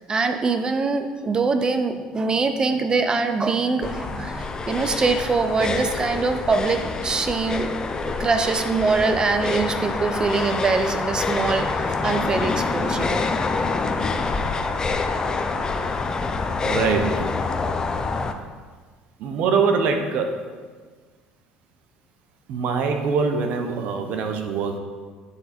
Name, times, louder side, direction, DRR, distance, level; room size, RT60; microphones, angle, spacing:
voice 1, 0.0-7.7 8.2-13.3, right 4 dB, 30° right, 8 dB, 0.7 m, -23 dB
sound 1, 3.8-18.3, left 4 dB, 25° left, 0.6 m, -26 dB
voice 2, 16.6-17.2 19.2-20.3 22.5-24.8, right 5 dB, 65° right, 5 dB, 0.9 m, -23 dB
9.8 x 3.9 x 4.4 m, 1.5 s
supercardioid pair, 95°, 3 cm